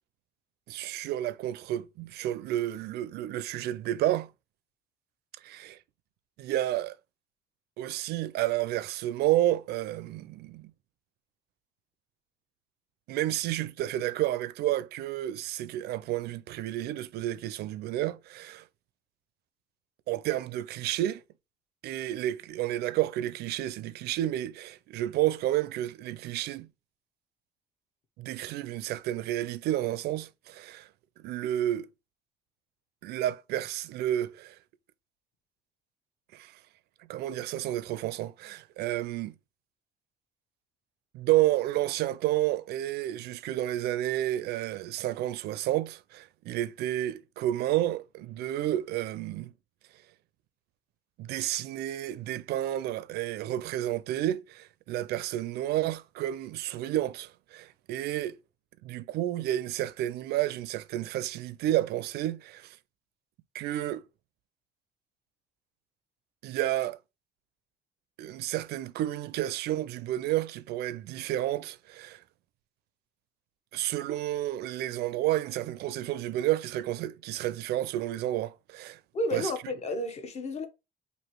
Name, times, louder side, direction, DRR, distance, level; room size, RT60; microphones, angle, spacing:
voice 1, 0.7-4.3 5.4-5.8 6.4-7.0 7.8-10.7 13.1-18.6 20.1-21.2 21.8-26.7 28.2-30.9 31.2-31.9 33.0-34.6 36.3-36.5 37.1-39.3 41.1-49.5 51.2-58.4 58.8-62.8 63.5-64.1 66.4-67.0 68.2-72.2 73.7-79.0 79.3-79.5, right 14 dB, 70° right, 0.4 m, -31 dB
voice 2, 79.1-80.7, left 1 dB, 40° left, 0.8 m, -31 dB
3.1 x 2.7 x 4.5 m
cardioid pair, 110°, 17 cm